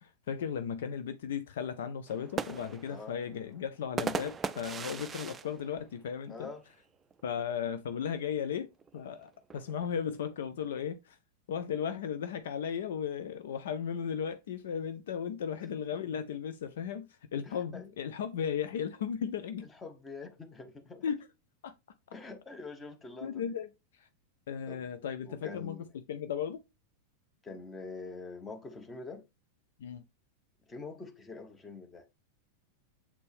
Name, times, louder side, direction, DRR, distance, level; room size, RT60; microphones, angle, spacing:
voice 1, 0.0-6.5 7.2-11.2 11.5-19.7 21.0-21.2 21.6-21.7 23.2-24.1 24.5-26.6 29.8-30.0, left 8 dB, 60° left, 0.5 m, -36 dB
sound 1, 2.1-6.7 7.1-7.2 7.5-8.0 8.8-10.3, right 5 dB, 20° right, 0.4 m, -39 dB
voice 2, 6.3-6.7 15.7-15.8 17.4-17.9 19.6-21.1 22.1-23.5 24.7-25.0 25.3-25.9 27.4-29.3 30.7-32.1, left 3 dB, 15° left, 1.2 m, -45 dB
7.2 x 4.2 x 3.4 m
figure-of-eight pair, 90°, 0 cm